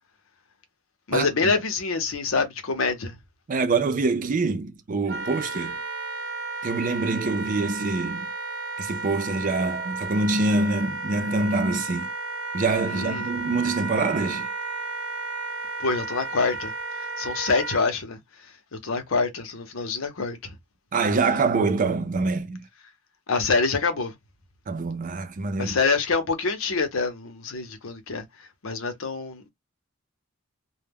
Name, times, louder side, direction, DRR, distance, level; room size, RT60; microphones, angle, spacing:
voice 1, 1.1-3.2 12.9-13.3 15.8-20.6 23.3-24.2 25.6-29.5, left 4 dB, 85° left, 0.7 m, -26 dB
voice 2, 3.5-5.8 6.6-8.3 8.8-12.1 12.5-14.5 20.9-22.7 24.7-25.7, right 3 dB, 40° right, 0.4 m, -25 dB
Wind instrument woodwind instrument, 5.1-17.8, right 3 dB, 65° right, 0.8 m, -33 dB
2.2 x 2.2 x 3.4 m
head